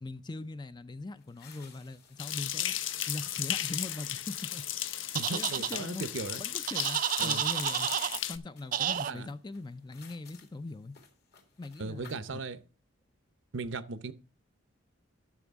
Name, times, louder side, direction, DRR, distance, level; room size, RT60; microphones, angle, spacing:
voice 1, 0.0-2.7 3.1-4.6 5.1-6.1 6.4-7.9 8.3-11.0 11.6-12.4, left 2 dB, 20° left, 0.4 m, -41 dB
sound 1, 1.2-12.3, left 6 dB, 55° left, 1.9 m, -60 dB
sound 2, 2.2-8.4, left 11 dB, 70° left, 0.7 m, -35 dB
voice 2, 5.1-6.4 7.2-7.4 9.1-9.3 11.8-12.6 13.5-14.1, right 3 dB, 65° right, 0.7 m, -37 dB
sound 3, 5.2-5.8 6.7-8.2 8.7-9.1, right 10 dB, 40° right, 0.3 m, -30 dB
12.5 x 6.0 x 3.6 m
head